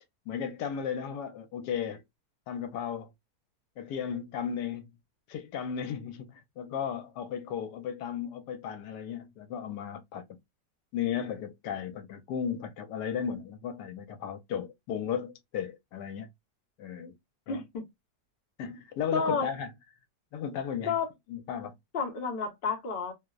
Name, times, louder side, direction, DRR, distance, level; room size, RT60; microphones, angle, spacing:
voice 1, 0.3-2.0 2.5-3.1 3.8-4.9 5.3-10.4 10.9-16.3 16.8-17.1 17.5-17.6 18.6-19.7 20.3-20.9 21.3-21.8, left 8 dB, 80° left, 1.2 m, -35 dB
voice 2, 17.5-17.8 19.1-19.5 20.9-21.1 21.9-23.1, left 5 dB, 50° left, 0.6 m, -30 dB
2.8 x 2.0 x 2.2 m
omnidirectional pair, 1.8 m